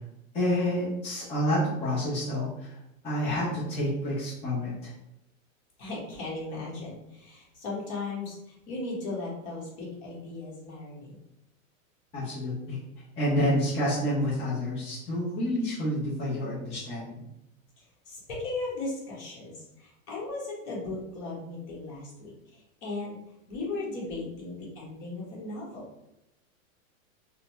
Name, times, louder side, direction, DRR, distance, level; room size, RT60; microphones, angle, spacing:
voice 1, 0.3-2.8 3.0-4.9 12.1-12.8 13.2-17.3, left 1 dB, 15° left, -10 dB, 0.8 m, -29 dB
voice 2, 5.8-11.1 17.8-23.2 23.5-25.8, left 2 dB, 40° left, -5 dB, 1.5 m, -37 dB
3.7 x 2.2 x 3.0 m, 0.83 s
supercardioid pair, 145°, 41 cm